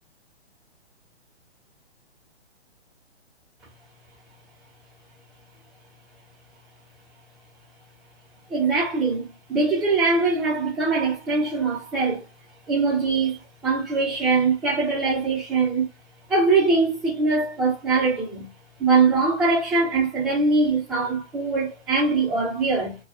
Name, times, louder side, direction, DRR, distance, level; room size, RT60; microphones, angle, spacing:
voice 1, 8.5-12.2 12.7-15.9 16.3-18.5 18.8-23.0, right 4 dB, 10° right, 0.8 m, -22 dB
2.6 x 2.3 x 2.5 m
figure-of-eight pair, 130°, 33 cm